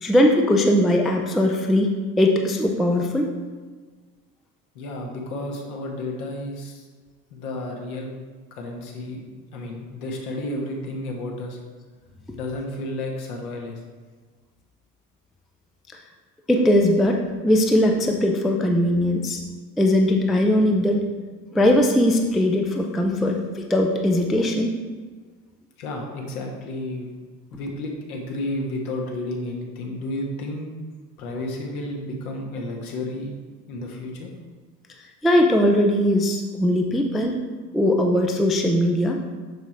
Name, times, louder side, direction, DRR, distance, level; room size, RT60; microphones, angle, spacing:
voice 1, 0.0-3.3 16.5-19.4 19.8-21.0 21.5-24.8 35.2-37.4 37.7-39.2, left 1 dB, ahead, 2 dB, 0.4 m, -20 dB
voice 2, 4.7-6.8 7.3-8.1 8.5-9.2 9.5-11.6 12.3-13.8 25.8-27.1 27.5-30.7 31.2-33.3 33.7-34.3, left 1 dB, 65° left, 0 dB, 1.6 m, -31 dB
6.2 x 6.0 x 4.3 m, 1.4 s
figure-of-eight pair, 65°, 48 cm